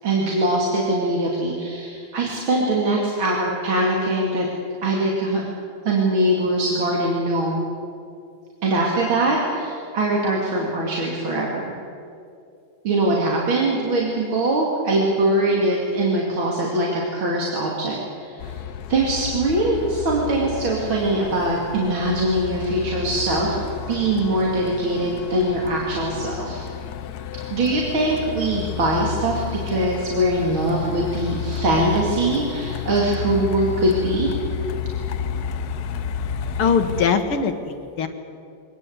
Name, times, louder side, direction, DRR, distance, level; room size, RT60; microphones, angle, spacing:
voice 1, 0.0-4.5 4.8-5.4 5.9-7.6 8.6-11.7 12.8-18.6 18.9-23.6 23.9-26.6 27.5-34.3, right 1 dB, 70° right, -3 dB, 3.4 m, -22 dB
Truck, 18.4-37.1, left 8 dB, 65° left, 1.0 m, -31 dB
voice 2, 36.6-38.1, left 6 dB, 90° left, 7 dB, 2.4 m, -21 dB
23.5 x 19.0 x 8.1 m, 2.4 s
omnidirectional pair, 2.3 m